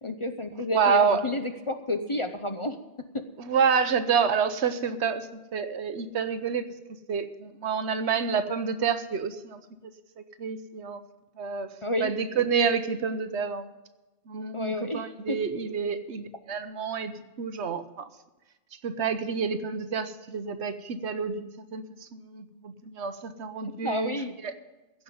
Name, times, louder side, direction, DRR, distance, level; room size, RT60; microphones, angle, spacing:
voice 1, 0.0-2.8 3.1-3.2 11.8-12.1 14.5-15.4 23.6-24.3, left 2 dB, 30° left, 7 dB, 0.7 m, -31 dB
voice 2, 0.7-1.2 3.4-6.6 7.1-9.6 10.4-11.0 11.4-11.7 12.0-13.7 14.3-18.1 18.8-24.1 24.4-24.5, right 6 dB, 70° right, 11 dB, 1.1 m, -28 dB
15.5 x 5.5 x 9.4 m, 1.1 s
omnidirectional pair, 1.2 m